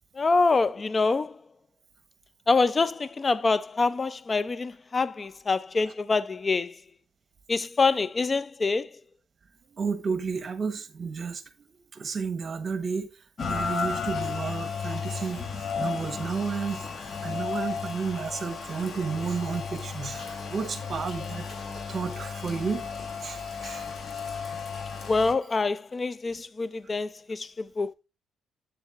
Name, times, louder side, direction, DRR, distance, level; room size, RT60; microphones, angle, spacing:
voice 1, 0.1-1.4 2.5-6.8 7.5-9.0 25.1-27.9, left 3 dB, 30° left, 0.4 m, -25 dB
voice 2, 9.8-11.4 12.0-13.1 13.4-15.4 15.8-16.8 17.2-21.4 21.9-22.9 23.2-23.9, right 5 dB, 45° right, 1.0 m, -31 dB
Rain, 13.4-25.3, left 5 dB, 50° left, 1.2 m, -34 dB
8.2 x 7.3 x 2.4 m
cardioid pair, 90°, 0 cm